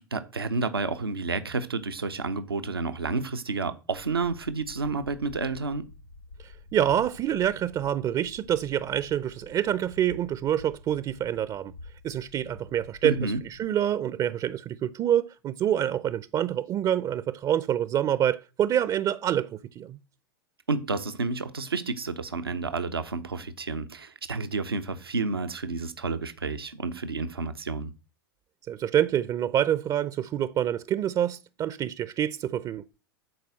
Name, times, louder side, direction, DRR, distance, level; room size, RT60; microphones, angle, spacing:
voice 1, 0.0-5.9 13.0-13.4 20.7-27.9, right 4 dB, 85° right, 1.1 m, -30 dB
sound 1, 3.9-13.7, left 3 dB, 90° left, 1.2 m, -48 dB
voice 2, 6.4-11.7 12.0-20.0 28.7-32.8, right 10 dB, 35° right, 0.7 m, -27 dB
12.5 x 4.9 x 7.7 m
figure-of-eight pair, 90°, 12 cm